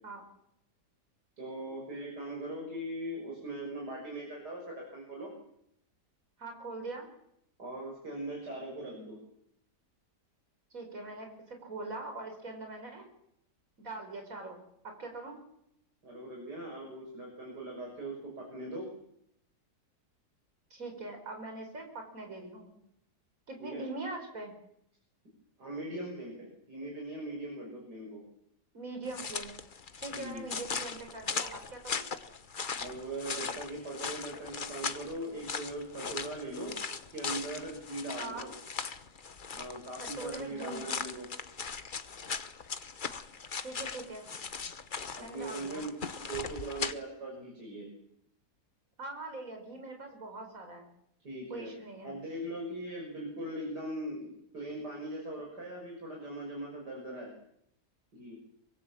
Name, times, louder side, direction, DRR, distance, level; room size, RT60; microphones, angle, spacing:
voice 1, 1.4-5.3 7.6-9.2 16.0-18.9 23.6-23.9 25.6-28.2 30.1-30.5 32.8-38.5 39.5-41.3 45.2-45.9 46.2-47.9 51.2-51.7 52.0-57.3 58.1-58.4, right 1 dB, 85° right, -1 dB, 6.8 m, -40 dB
voice 2, 6.4-7.1 10.7-13.1 13.8-15.4 20.7-22.7 23.5-24.5 28.7-29.5 30.0-32.1 38.2-38.5 40.0-40.9 43.6-44.2 45.2-45.9 49.0-50.9 51.5-52.1, right 2 dB, 55° right, 4 dB, 5.0 m, -42 dB
sound 1, 29.1-46.9, left 5 dB, 35° left, 1.0 m, -39 dB
24.5 x 22.5 x 7.3 m, 0.75 s
omnidirectional pair, 1.7 m